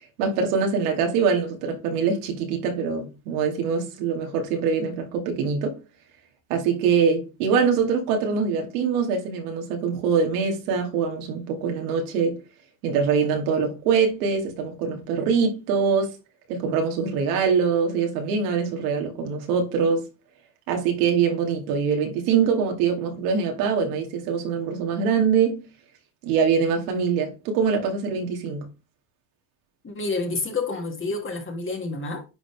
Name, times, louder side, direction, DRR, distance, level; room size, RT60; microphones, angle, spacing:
voice 1, 0.2-5.8 6.5-12.4 12.8-16.1 16.5-20.0 20.7-25.6 26.2-28.7, right 6 dB, 90° right, 2.4 m, -23 dB
voice 2, 29.8-32.3, left 3 dB, 25° left, 2.2 m, -29 dB
9.8 x 4.2 x 3.4 m
supercardioid pair, 90°, 44 cm